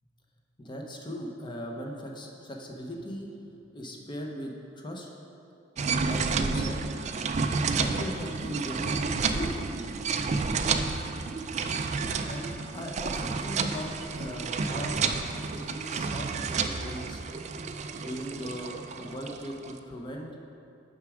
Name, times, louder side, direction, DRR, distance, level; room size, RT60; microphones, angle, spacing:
voice 1, 0.6-3.3 3.7-5.1 6.0-6.8 7.7-10.1 12.2-15.0 15.4-17.2 17.9-20.3, equal, 25° left, 0 dB, 0.8 m, -39 dB
sound 1, 5.8-19.7, right 4 dB, 35° right, 0.3 m, -30 dB
6.7 x 5.9 x 4.9 m, 2.6 s
head